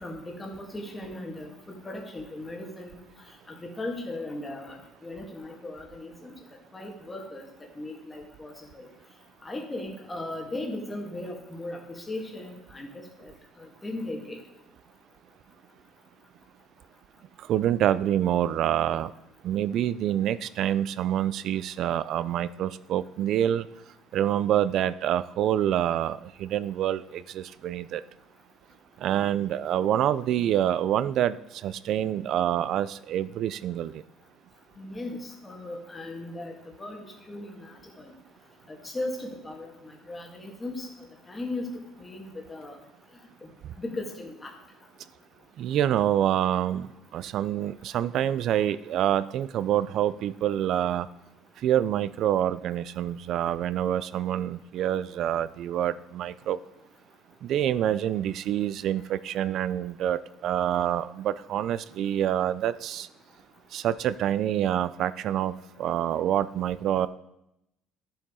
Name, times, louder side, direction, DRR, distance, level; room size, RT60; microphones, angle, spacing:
voice 1, 0.0-3.0 3.5-4.8 5.0-6.3 6.7-7.4 7.8-8.9 9.4-13.3 13.6-14.4 34.8-38.1 38.7-40.9 41.3-42.8 43.8-44.5, left 2 dB, 15° left, 1 dB, 1.7 m, -37 dB
voice 2, 17.5-19.1 19.4-23.7 24.1-28.0 29.0-34.0 45.6-51.1 51.6-56.6 57.4-63.1 63.7-67.1, right 11 dB, 50° right, 16 dB, 0.4 m, -26 dB
13.0 x 7.0 x 3.7 m, 0.85 s
cardioid pair, 160°, 0 cm